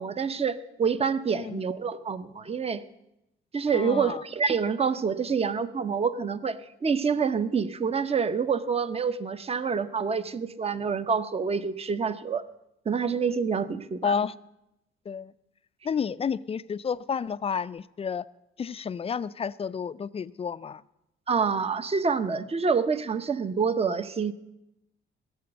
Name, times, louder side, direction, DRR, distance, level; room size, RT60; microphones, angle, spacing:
voice 1, 0.0-2.8 3.5-12.4 12.9-14.1 21.3-24.3, right 5 dB, 30° right, 13 dB, 0.7 m, -27 dB
voice 2, 3.7-4.2 14.0-14.3 15.1-15.3 15.8-18.3 18.6-20.8, left 6 dB, 30° left, 16 dB, 0.4 m, -30 dB
16.0 x 6.9 x 7.9 m, 0.87 s
cardioid pair, 90°, 20 cm